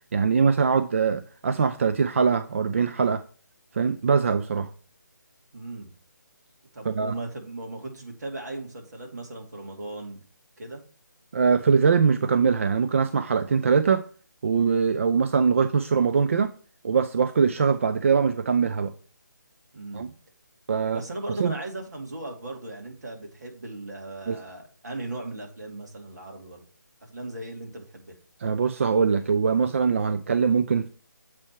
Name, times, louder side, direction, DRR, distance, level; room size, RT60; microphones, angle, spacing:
voice 1, 0.1-3.2 3.7-4.7 6.8-7.1 11.3-14.0 14.4-16.5 16.8-18.9 19.9-20.1 20.7-21.0 21.3-21.5 24.3-24.4 28.4-30.9, right 5 dB, 40° right, 0.4 m, -22 dB
voice 2, 5.5-5.9 6.7-10.2 10.6-10.8 19.7-20.1 20.8-26.6 27.0-28.1, right 2 dB, 60° right, 2.4 m, -37 dB
7.6 x 4.5 x 4.5 m
figure-of-eight pair, 150°, 10 cm